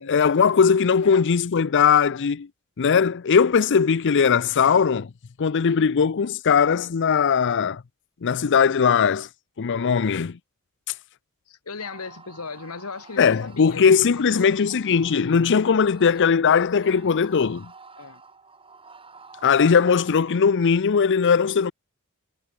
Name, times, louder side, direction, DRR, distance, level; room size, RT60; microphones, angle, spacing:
voice 1, 0.1-2.5 2.8-5.1 5.4-7.8 8.2-9.3 9.6-10.4 13.2-17.7 19.4-21.7, left 6 dB, 55° left, 0.5 m, -19 dB
voice 2, 11.5-14.5 18.0-18.2, left 4 dB, 85° left, 1.5 m, -37 dB
sound 1, 11.8-20.4, right 4 dB, 25° right, 3.9 m, -49 dB
head